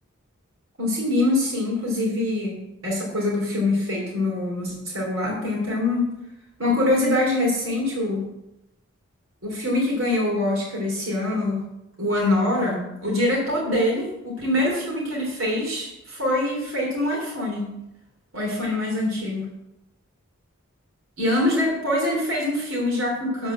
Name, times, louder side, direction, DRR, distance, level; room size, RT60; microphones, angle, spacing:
voice 1, 0.8-6.1 6.6-8.3 9.4-11.6 12.0-17.7 18.3-19.5 21.2-23.5, left 1 dB, 70° right, -3 dB, 3.5 m, -24 dB
12.5 x 5.3 x 7.2 m, 0.88 s
head